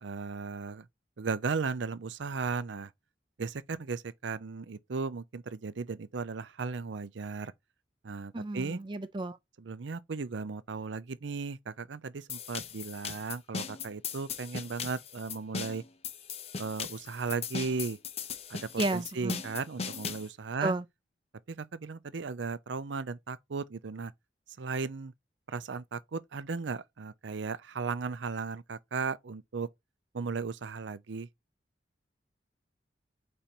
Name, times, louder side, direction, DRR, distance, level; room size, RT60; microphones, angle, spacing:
voice 1, 0.0-0.9 1.2-2.9 3.4-7.5 8.0-8.8 9.6-15.8 16.6-18.0 18.5-20.7 21.5-24.1 24.6-25.1 25.5-29.7 30.1-31.3, right 4 dB, 75° right, 0.6 m, -36 dB
voice 2, 8.3-9.4 18.8-19.4 20.6-20.8, right 2 dB, 25° right, 0.4 m, -32 dB
sound 1, 12.3-20.3, left 6 dB, 35° left, 0.5 m, -39 dB
5.1 x 4.3 x 4.4 m
head